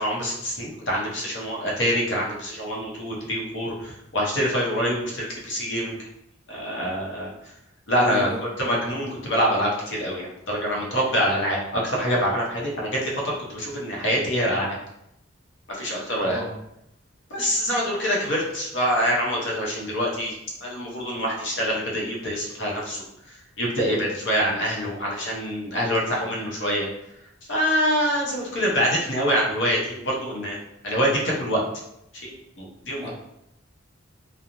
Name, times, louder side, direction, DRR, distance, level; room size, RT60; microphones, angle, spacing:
voice 1, 0.0-6.0 6.5-7.3 7.9-8.3 8.6-14.8 15.7-16.4 17.3-20.3 20.6-23.0 23.6-26.9 27.5-30.6 30.8-31.6 32.2-32.3 32.6-33.1, equal, 70° left, -3 dB, 0.7 m, -25 dB
voice 2, 8.1-8.4 16.2-16.5 33.0-33.1, equal, ahead, -6 dB, 0.4 m, -33 dB
2.8 x 2.0 x 2.5 m, 0.82 s
head